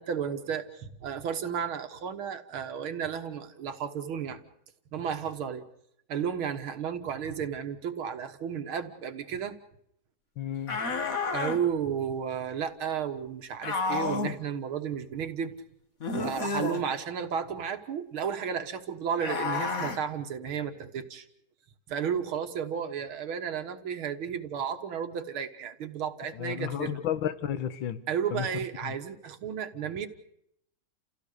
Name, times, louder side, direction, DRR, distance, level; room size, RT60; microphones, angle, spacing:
voice 1, 0.0-4.4 4.9-5.7 6.1-9.6 11.3-15.5 16.1-21.3 21.9-27.0 28.1-30.1, right 7 dB, 80° right, 8 dB, 2.3 m, -33 dB
voice 2, 10.4-10.8 26.2-28.0 28.3-28.5 28.8-28.9, left 10 dB, 70° left, 12 dB, 1.9 m, -32 dB
sound 1, 10.7-11.6 13.6-14.4 16.0-16.8 19.2-20.0, left 4 dB, 45° left, 2.0 m, -30 dB
29.5 x 16.5 x 6.7 m, 0.75 s
omnidirectional pair, 2.3 m